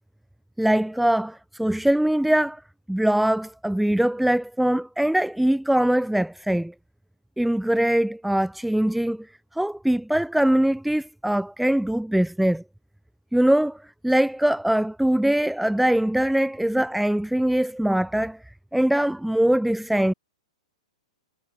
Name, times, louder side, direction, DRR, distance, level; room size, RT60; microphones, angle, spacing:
voice 1, 0.6-2.6 2.9-6.7 7.4-9.3 9.5-12.6 13.3-18.4 18.7-20.1, right 1 dB, ahead, 0.9 m, -22 dB
hypercardioid pair, 115°, 4 cm